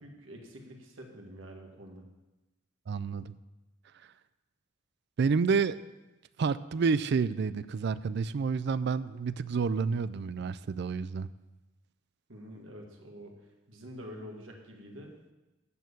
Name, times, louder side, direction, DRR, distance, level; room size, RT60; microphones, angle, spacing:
voice 1, 0.0-2.0 12.3-13.4 13.7-15.2, equal, 90° right, 1 dB, 1.9 m, -47 dB
voice 2, 2.9-3.3 5.2-5.8 6.4-11.3, right 5 dB, 60° right, 16 dB, 0.4 m, -29 dB
12.5 x 4.5 x 8.3 m, 1.0 s
head